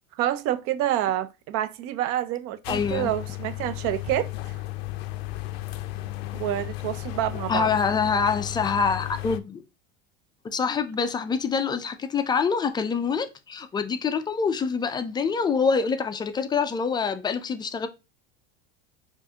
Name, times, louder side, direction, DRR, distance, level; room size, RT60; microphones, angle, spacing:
voice 1, 0.2-4.6 6.3-7.7, right 12 dB, 50° right, 0.5 m, -28 dB
sound 1, 2.6-9.4, left 17 dB, 85° left, 0.5 m, -34 dB
voice 2, 2.7-3.1 7.5-9.6 10.5-17.9, left 5 dB, 15° left, 0.3 m, -25 dB
4.5 x 2.5 x 2.7 m
supercardioid pair, 115°, 30 cm